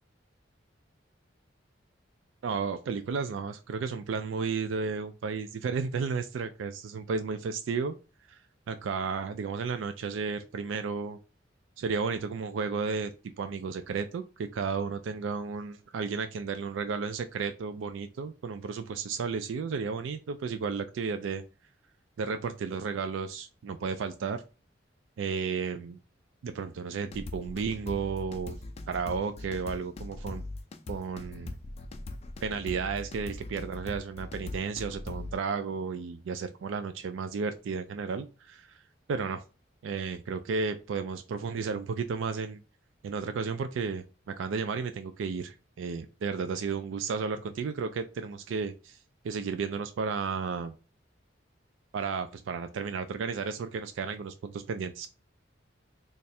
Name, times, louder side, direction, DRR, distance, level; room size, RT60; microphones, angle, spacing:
voice 1, 2.4-8.0 8.3-8.4 8.7-11.2 11.8-13.1 13.4-21.4 22.2-24.4 25.2-26.0 26.4-28.6 28.9-30.4 30.9-31.6 32.4-38.8 39.1-39.4 39.8-42.6 43.0-49.0 49.2-50.7 51.9-55.1, right 5 dB, 85° right, 9 dB, 0.4 m, -33 dB
sound 1, 27.1-35.3, left 2 dB, 35° left, 0.4 m, -40 dB
3.2 x 2.4 x 4.1 m, 0.32 s
head